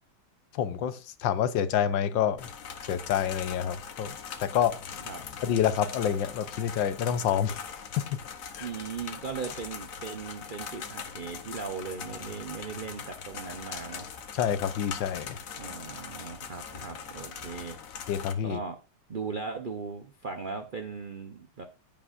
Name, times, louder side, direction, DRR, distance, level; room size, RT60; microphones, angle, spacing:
voice 1, 0.5-2.5 2.9-4.1 4.4-4.8 5.4-7.6 8.0-8.2 8.5-8.7 14.3-15.4 18.1-18.6, left 9 dB, 75° left, 1.4 m, -28 dB
sound 1, 2.4-18.3, left 6 dB, 55° left, 1.1 m, -41 dB
voice 2, 8.6-14.1 15.6-17.8 18.4-18.8 19.1-21.6, right 5 dB, 70° right, 0.4 m, -38 dB
15.0 x 5.4 x 2.5 m
omnidirectional pair, 2.1 m